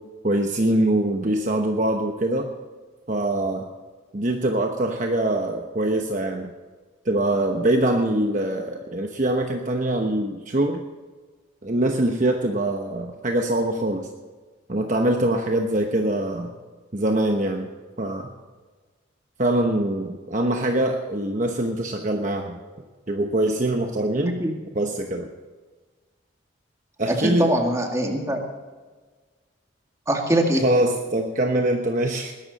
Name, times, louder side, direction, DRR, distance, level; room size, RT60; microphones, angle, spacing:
voice 1, 0.2-2.5 3.1-3.7 4.1-6.5 7.0-10.8 11.6-14.1 14.7-16.5 16.9-17.7 18.0-18.3 19.4-22.6 23.1-24.4 24.7-25.3 27.0-27.5 30.6-32.3, right 1 dB, 40° right, 3 dB, 1.0 m, -23 dB
voice 2, 27.1-28.4 30.1-30.6, right 1 dB, 15° right, 2 dB, 2.0 m, -22 dB
20.5 x 12.0 x 4.2 m, 1.4 s
head